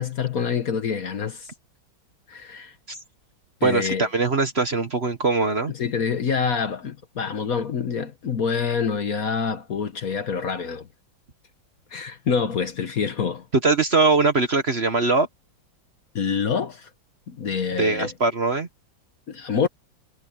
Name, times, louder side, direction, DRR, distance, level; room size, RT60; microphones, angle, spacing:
voice 1, 0.0-1.5 2.3-2.7 3.6-4.0 5.7-10.9 11.9-13.4 16.1-16.9 17.3-18.1 19.3-19.7, left 6 dB, 50° left, 1.4 m, -26 dB
voice 2, 3.6-5.7 13.6-15.3 17.8-18.7, right 3 dB, 35° right, 1.3 m, -21 dB
omnidirectional pair, 2.1 m